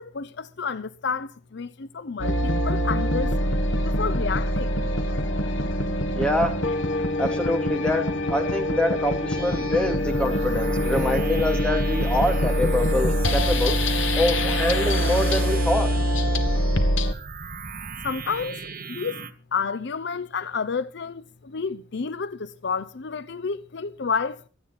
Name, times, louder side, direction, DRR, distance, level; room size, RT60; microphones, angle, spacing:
voice 1, 0.0-3.3 3.8-4.8 18.0-18.6 18.9-19.2 19.5-24.4, left 5 dB, 60° left, 0.6 m, -30 dB
sound 1, 2.2-17.1, left 1 dB, 85° left, 1.7 m, -24 dB
voice 2, 6.1-6.5 7.2-13.8 14.1-15.9, left 1 dB, 5° left, 2.5 m, -25 dB
sound 2, 9.3-19.3, right 5 dB, 50° right, 1.3 m, -37 dB
25.5 x 9.0 x 4.2 m
head